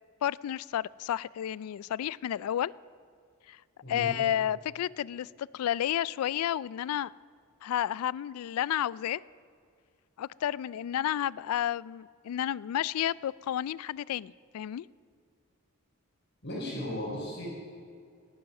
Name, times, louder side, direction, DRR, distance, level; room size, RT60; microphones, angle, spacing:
voice 1, 0.2-2.7 3.5-3.6 3.9-7.1 7.6-9.2 10.2-14.9, left 11 dB, 90° left, 18 dB, 0.3 m, -31 dB
voice 2, 16.4-17.6, left 1 dB, 55° left, -8 dB, 3.9 m, -36 dB
17.5 x 10.5 x 6.4 m, 2.2 s
head